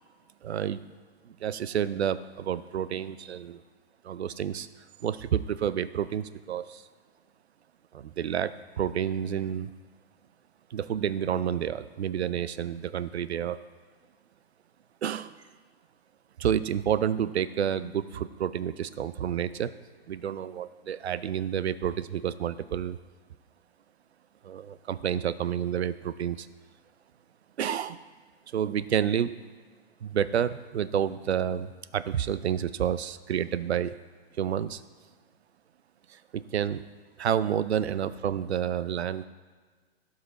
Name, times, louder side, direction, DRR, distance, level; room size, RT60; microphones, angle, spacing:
voice 1, 0.4-0.8 1.2-3.6 4.0-4.7 5.0-6.8 7.9-9.7 10.7-13.6 15.0-15.4 16.4-19.7 20.1-23.0 24.4-26.5 27.6-28.0 28.5-29.3 30.0-34.0 34.4-34.8 36.1-36.9 37.2-39.3, right 9 dB, 80° right, 15 dB, 0.6 m, -29 dB
16.5 x 5.6 x 4.0 m, 1.5 s
hypercardioid pair, 125°, 32 cm